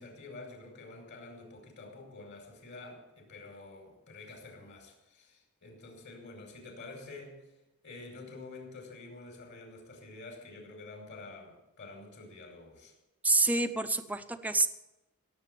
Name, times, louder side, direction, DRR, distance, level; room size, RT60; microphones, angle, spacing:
voice 1, 0.0-7.4 7.8-12.9, left 3 dB, 50° left, 2 dB, 5.0 m, -48 dB
voice 2, 13.2-14.7, right 3 dB, 5° right, 8 dB, 0.7 m, -27 dB
17.0 x 7.8 x 9.2 m, 0.99 s
head